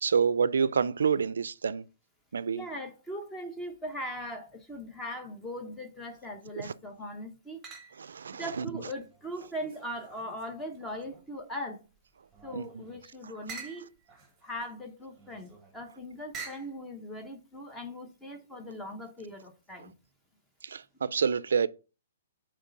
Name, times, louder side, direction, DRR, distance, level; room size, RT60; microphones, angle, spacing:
voice 1, 0.0-1.9 2.3-2.6 6.6-6.7 8.0-8.7 12.5-12.7 20.6-21.7, right 6 dB, 90° right, 0.4 m, -28 dB
voice 2, 2.5-7.6 8.3-11.8 12.4-13.9 14.4-19.9, equal, 10° left, 0.8 m, -40 dB
sound 1, 6.1-6.7 7.6-8.2 8.7-11.4 11.9-16.8, right 5 dB, 10° right, 1.3 m, -49 dB
8.1 x 3.2 x 5.2 m
hypercardioid pair, 165°, 0 cm